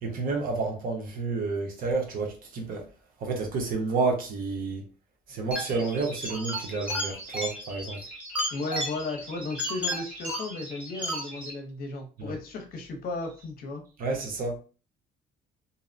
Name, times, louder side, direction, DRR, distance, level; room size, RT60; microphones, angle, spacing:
voice 1, 0.0-2.8 3.2-4.8 5.3-8.0 12.2-12.3 14.0-14.6, right 4 dB, 55° right, 0.8 m, -30 dB
sound 1, 5.5-11.5, equal, 5° right, 0.9 m, -34 dB
voice 2, 8.5-13.8, left 3 dB, 60° left, 0.7 m, -35 dB
2.7 x 2.0 x 2.5 m
cardioid pair, 110°, 17 cm